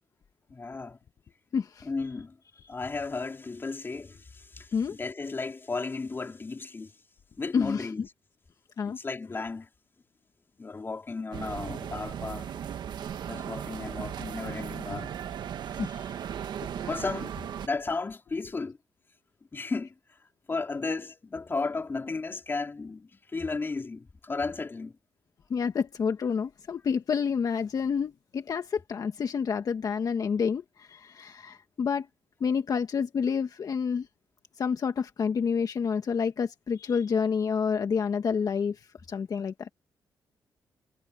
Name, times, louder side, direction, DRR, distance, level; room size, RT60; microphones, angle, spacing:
voice 1, 0.5-1.0 1.8-2.4 2.7-6.9 7.4-8.0 8.8-9.7 10.6-12.5 13.2-15.2 16.7-17.3 17.6-18.8 19.5-19.9 20.5-25.0, left 3 dB, 30° left, 4.1 m, -34 dB
voice 2, 1.5-1.9 4.7-4.9 7.5-8.1 8.8-9.0 15.8-16.0 16.6-16.7 25.5-32.1 32.4-34.0 34.6-38.7 39.1-39.7, left 6 dB, 55° left, 1.6 m, -29 dB
sound 1, 11.3-17.7, right 9 dB, 75° right, 1.5 m, -37 dB
cardioid pair, 110°, 8 cm